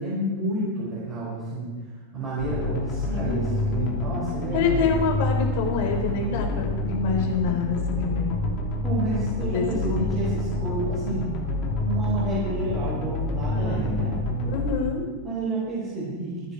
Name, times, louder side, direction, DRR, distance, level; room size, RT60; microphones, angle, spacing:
voice 1, 0.0-1.9 2.1-4.9 8.8-11.4 11.8-14.2 15.2-16.4, right 1 dB, 20° right, -8 dB, 6.2 m, -30 dB
sound 1, 2.4-14.8, left 2 dB, 35° left, 3.1 m, -28 dB
voice 2, 3.1-3.5 4.5-8.4 9.5-9.6 9.9-10.0 13.5-14.1 14.4-15.1, left 5 dB, 60° left, 2 dB, 4.3 m, -27 dB
27.5 x 9.6 x 4.8 m, 1.3 s
supercardioid pair, 160°, 0 cm